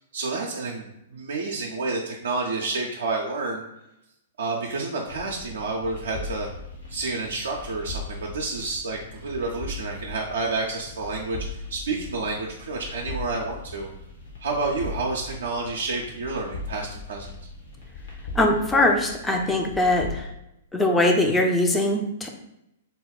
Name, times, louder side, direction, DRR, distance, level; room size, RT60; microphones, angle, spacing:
voice 1, 0.1-3.6 4.4-6.5 6.9-13.9 14.4-17.3, right 3 dB, 65° right, -2 dB, 0.5 m, -29 dB
sound 1, 5.1-20.3, left 3 dB, 65° left, 1.2 m, -39 dB
voice 2, 18.4-20.3 20.7-22.3, left 1 dB, 10° left, 2 dB, 0.5 m, -21 dB
4.1 x 2.2 x 3.5 m, 0.85 s
figure-of-eight pair, 105°, 0 cm